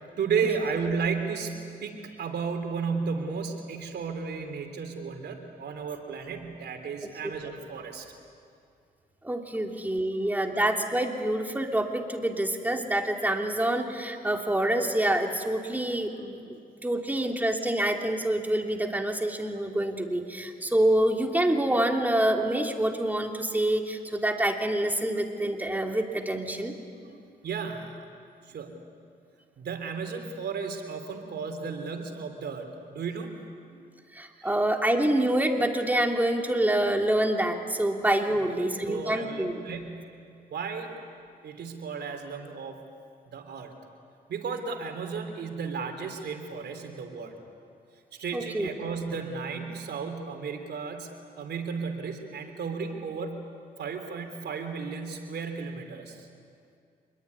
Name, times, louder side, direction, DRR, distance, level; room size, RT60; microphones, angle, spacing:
voice 1, 0.2-1.5 1.8-8.1 9.5-9.6 27.0-27.2 27.4-28.1 28.4-28.8 29.6-33.3 33.7-33.9 34.4-34.6 38.3-40.1 40.5-41.0 41.4-42.8 43.3-43.7 44.3-47.3 48.2-53.4 53.8-56.3, right 5 dB, 80° right, 5 dB, 3.5 m, -34 dB
voice 2, 9.2-26.7 34.1-39.5 48.3-48.7, right 1 dB, 10° right, 2 dB, 3.1 m, -26 dB
26.0 x 22.0 x 9.8 m, 2.4 s
cardioid pair, 75°, 17 cm